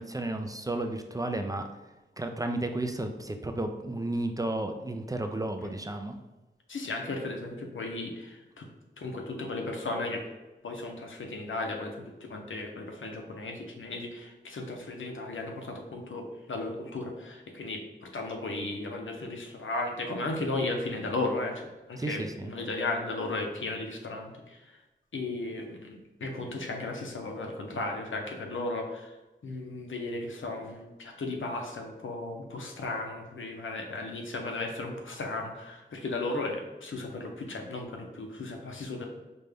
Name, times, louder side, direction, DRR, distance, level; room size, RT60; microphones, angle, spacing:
voice 1, 0.0-1.7 2.2-6.2 22.0-22.5, right 2 dB, 20° right, 5 dB, 0.3 m, -33 dB
voice 2, 6.7-8.7 9.0-10.2 10.6-24.8 25.1-29.2 29.4-39.1, left 2 dB, 90° left, 2 dB, 0.7 m, -35 dB
5.1 x 2.2 x 3.4 m, 1.1 s
wide cardioid pair, 75°, 20 cm